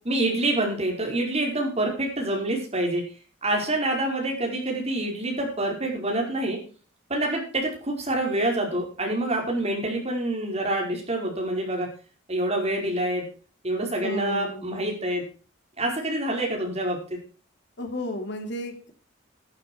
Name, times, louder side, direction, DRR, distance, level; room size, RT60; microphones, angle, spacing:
voice 1, 0.0-3.0 3.4-6.6 7.1-11.9 12.3-13.2 13.6-15.2 15.8-17.0, right 1 dB, 30° right, 0 dB, 5.1 m, -26 dB
voice 2, 14.0-14.9 17.8-18.9, left 1 dB, 60° left, 4 dB, 2.9 m, -33 dB
13.0 x 12.0 x 4.7 m, 0.38 s
head